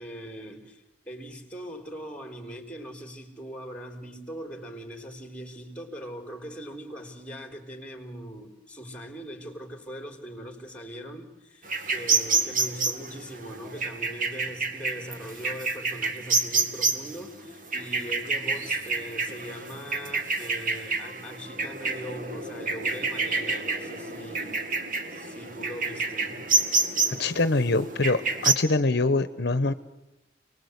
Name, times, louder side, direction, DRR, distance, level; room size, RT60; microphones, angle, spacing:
voice 1, 0.0-24.6 25.1-26.5, equal, 5° left, 4 dB, 4.1 m, -41 dB
sound 1, 11.7-28.5, right 3 dB, 50° right, 2.3 m, -28 dB
voice 2, 27.1-29.7, left 2 dB, 60° left, 12 dB, 1.0 m, -24 dB
29.0 x 20.5 x 8.2 m, 0.99 s
head